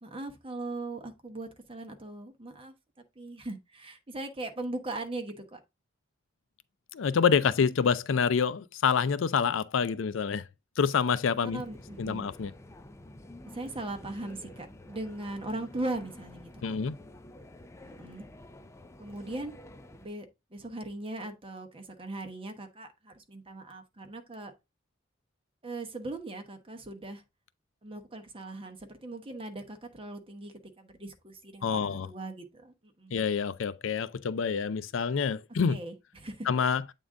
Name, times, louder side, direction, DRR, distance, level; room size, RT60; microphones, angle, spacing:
voice 1, 0.0-2.7 3.2-5.6 11.4-12.3 13.5-16.8 17.8-18.3 19.0-19.5 20.0-20.3 20.5-24.5 25.6-27.2 27.8-33.1 35.7-36.5, right 2 dB, 30° right, 1.1 m, -39 dB
voice 2, 6.9-10.4 10.8-11.6 12.0-12.5 16.6-17.0 31.6-32.1 33.1-35.8 36.5-36.8, left 6 dB, 75° left, 0.4 m, -27 dB
sound 1, 11.5-20.1, left 1 dB, 15° left, 0.5 m, -50 dB
8.1 x 3.8 x 3.6 m
head